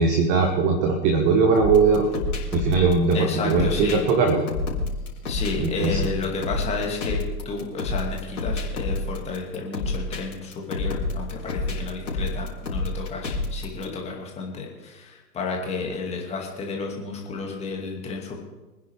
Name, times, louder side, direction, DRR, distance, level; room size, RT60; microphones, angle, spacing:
voice 1, 0.0-2.2 2.5-4.5 5.6-6.0, right 4 dB, 15° right, 4 dB, 0.8 m, -20 dB
sound 1, 1.6-13.8, left 2 dB, 55° left, 4.4 m, -29 dB
voice 2, 3.1-4.0 5.3-18.3, left 4 dB, 10° left, 0 dB, 2.4 m, -31 dB
25.0 x 10.0 x 3.5 m, 1.1 s
figure-of-eight pair, 120°, 50 cm